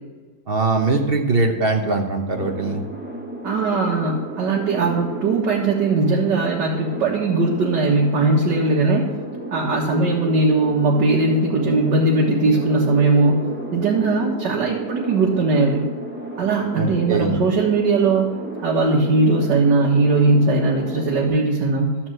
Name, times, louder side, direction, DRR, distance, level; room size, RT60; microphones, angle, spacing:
voice 1, 0.5-2.8 16.8-17.4, right 3 dB, 40° right, 4 dB, 0.9 m, -21 dB
sound 1, 2.3-21.3, right 2 dB, 5° right, 1.1 m, -32 dB
voice 2, 3.4-9.2 9.5-15.9 16.4-18.4 18.6-22.0, right 3 dB, 75° right, -3 dB, 1.9 m, -19 dB
12.5 x 4.4 x 7.7 m, 1.4 s
omnidirectional pair, 1.9 m